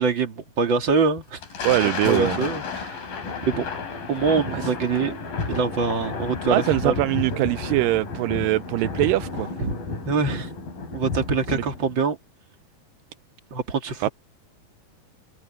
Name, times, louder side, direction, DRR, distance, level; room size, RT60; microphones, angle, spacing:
voice 1, 0.0-1.4 2.0-3.0 3.5-3.7 4.1-5.1 5.5-6.9 9.6-9.7 10.1-10.5 10.9-12.2 13.5-14.1, right 4 dB, 35° right, 2.9 m, -24 dB
Thunder, 1.2-11.9, left 4 dB, 90° left, 6.2 m, -31 dB
voice 2, 1.6-2.4 6.5-9.5 11.5-11.6 14.0-14.1, right 18 dB, 85° right, 2.2 m, -22 dB
omnidirectional pair, 3.9 m